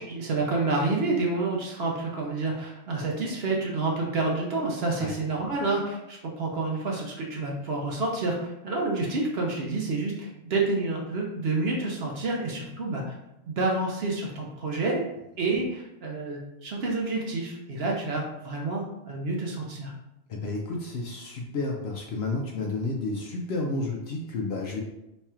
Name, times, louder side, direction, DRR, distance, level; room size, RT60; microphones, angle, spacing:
voice 1, 0.0-13.1 13.5-15.0 15.4-19.9, right 3 dB, 55° right, -1 dB, 0.8 m, -29 dB
voice 2, 20.3-24.8, left 2 dB, 60° left, 0 dB, 0.7 m, -31 dB
3.1 x 2.4 x 4.2 m, 0.89 s
omnidirectional pair, 1.4 m